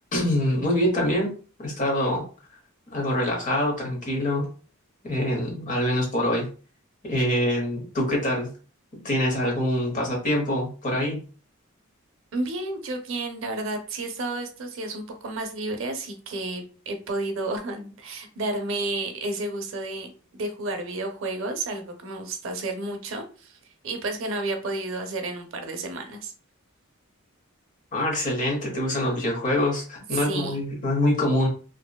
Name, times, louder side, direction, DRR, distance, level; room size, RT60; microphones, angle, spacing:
voice 1, 0.1-1.3 1.6-2.2 2.9-4.5 5.0-6.5 7.0-8.5 9.0-11.2 27.9-31.5, left 1 dB, 40° left, -1 dB, 0.9 m, -25 dB
voice 2, 12.3-23.5 23.8-26.3 30.1-30.6, right 2 dB, 60° right, 5 dB, 0.5 m, -31 dB
2.6 x 2.2 x 2.2 m, 0.38 s
head